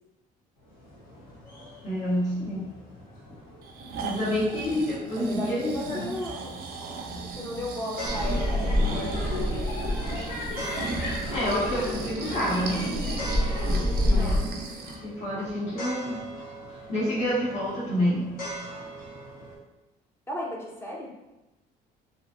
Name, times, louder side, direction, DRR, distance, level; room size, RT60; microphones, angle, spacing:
sound 1, 0.6-19.6, right 1 dB, 60° left, 1.1 m, -43 dB
voice 1, 1.8-2.7 4.0-6.0 11.3-12.9 14.1-14.5 15.0-16.3 16.9-18.4, equal, 45° left, -9 dB, 1.1 m, -28 dB
Breathing, 3.6-15.0 15.5-15.6, right 3 dB, 65° right, 0.4 m, -36 dB
voice 2, 5.2-6.6 7.2-10.0 14.1-14.5 20.3-21.1, left 1 dB, 15° left, -3 dB, 0.6 m, -36 dB
sound 2, 8.0-14.4, left 1 dB, 80° left, 1.2 m, -28 dB
2.9 x 2.5 x 2.5 m, 1.0 s
cardioid pair, 110°, 17 cm